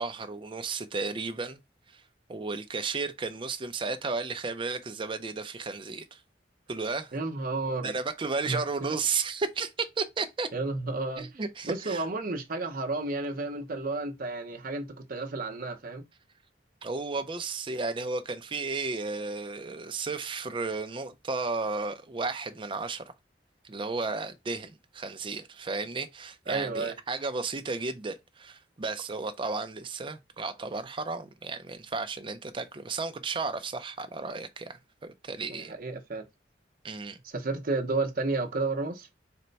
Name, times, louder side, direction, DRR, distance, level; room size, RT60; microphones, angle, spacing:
voice 1, 0.0-1.6 1.9-2.0 2.3-6.2 6.7-7.1 7.8-10.5 11.2-12.1 16.8-23.0 23.6-35.8 36.8-37.2, right 4 dB, 25° right, 0.4 m, -33 dB
voice 2, 7.1-7.9 8.4-9.0 10.5-11.3 11.6-16.0 26.5-26.9 35.5-36.2 37.2-39.1, right 3 dB, 50° right, 0.8 m, -32 dB
4.3 x 2.2 x 3.9 m
head